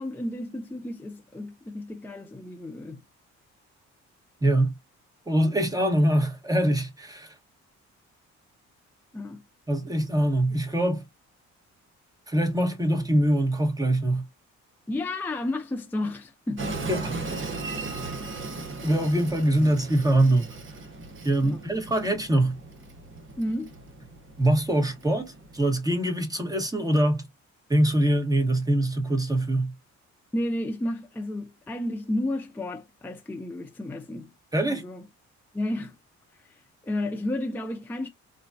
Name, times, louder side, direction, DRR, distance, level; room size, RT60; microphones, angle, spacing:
voice 1, 0.0-3.0 9.1-9.4 14.9-16.6 21.4-21.6 23.4-23.8 30.3-34.3 34.7-35.0 35.5-35.9 36.4-38.1, left 1 dB, 5° left, 0.5 m, -32 dB
voice 2, 4.4-4.7 5.3-7.3 9.7-11.0 12.3-14.2 16.9-17.6 18.8-20.6 21.2-22.6 24.4-27.3 27.7-29.7 34.5-34.8, right 1 dB, 10° right, 1.2 m, -23 dB
Train, 16.6-25.6, right 3 dB, 40° right, 1.0 m, -37 dB
3.9 x 2.2 x 2.6 m
cardioid pair, 90°, 30 cm